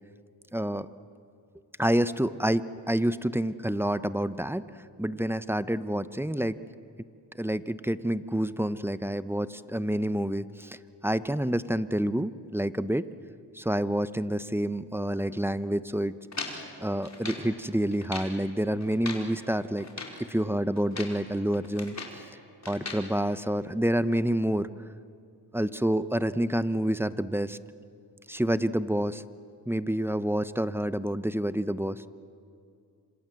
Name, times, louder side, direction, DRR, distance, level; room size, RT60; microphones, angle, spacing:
voice 1, 0.5-0.9 1.8-4.6 5.0-6.6 7.4-10.8 11.0-13.0 13.5-16.1 16.8-19.9 20.2-21.9 22.7-24.7 25.5-27.6 28.3-29.2 29.7-32.0, right 1 dB, 5° right, 13 dB, 0.9 m, -28 dB
sound 1, 16.3-17.5 17.9-18.4 18.8-19.3 19.8-20.2 20.8-21.2 21.5-22.2 22.6-23.1, left 3 dB, 35° left, 4.9 m, -39 dB
26.5 x 26.0 x 7.7 m, 2.4 s
cardioid pair, 60°, 44 cm